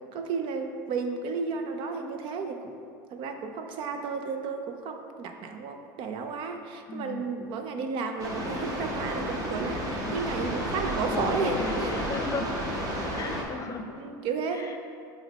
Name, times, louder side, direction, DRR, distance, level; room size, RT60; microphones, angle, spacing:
voice 1, 0.1-2.8 3.1-12.0 14.0-14.8, right 5 dB, 55° right, 6 dB, 0.6 m, -33 dB
voice 2, 6.9-7.3 10.0-10.2 10.8-12.5 13.1-13.9 14.5-14.8, left 3 dB, 30° left, 4 dB, 0.7 m, -35 dB
sound 1, 8.2-13.4, equal, 35° right, 1.2 m, -32 dB
7.7 x 3.1 x 4.1 m, 2.4 s
supercardioid pair, 100°, 10 cm